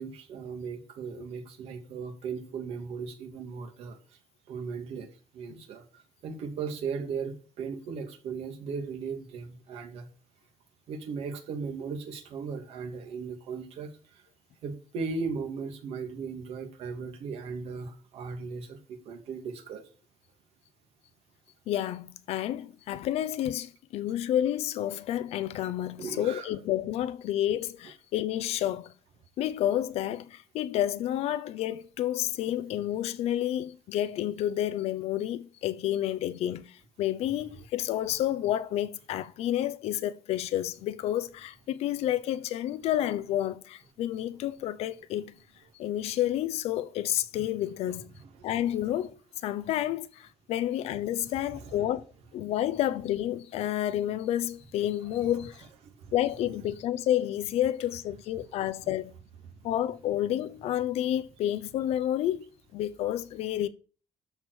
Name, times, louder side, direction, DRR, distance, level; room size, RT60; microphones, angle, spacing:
voice 1, 0.0-4.0 4.5-5.1 5.3-5.8 6.2-10.1 10.9-13.9 14.6-19.8 26.0-26.5 47.9-48.5 55.8-56.1, right 5 dB, 70° right, 2.5 m, -37 dB
voice 2, 21.7-28.9 29.4-45.3 45.8-48.1 48.4-52.0 52.3-55.6 56.1-59.1 59.6-63.7, left 12 dB, 85° left, 0.8 m, -30 dB
13.0 x 5.0 x 6.4 m
cardioid pair, 180°, 10 cm